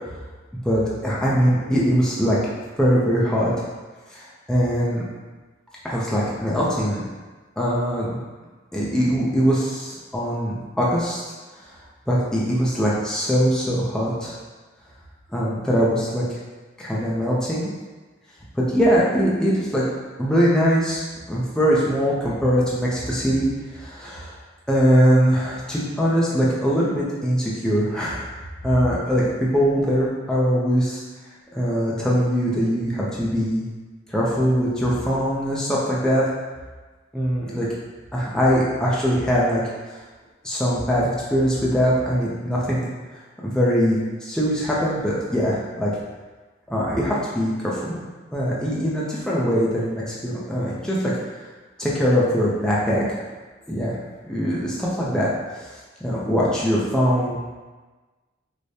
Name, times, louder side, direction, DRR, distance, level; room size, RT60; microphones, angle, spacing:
voice 1, 0.6-3.5 4.1-5.1 5.8-7.0 7.6-8.2 8.7-11.2 12.1-14.3 15.3-16.2 16.8-17.7 18.5-19.8 20.2-21.0 21.3-23.5 23.7-24.3 24.7-28.3 28.6-29.2 29.5-31.0 31.5-33.6 34.1-36.3 37.1-37.7 38.1-39.6 40.4-42.8 43.4-45.9 46.7-48.0 48.3-51.1 51.8-53.0 53.7-54.0 54.3-55.3 55.5-55.6 56.0-57.4, equal, 5° left, -7 dB, 0.5 m, -22 dB
4.8 x 2.1 x 2.7 m, 1.3 s
head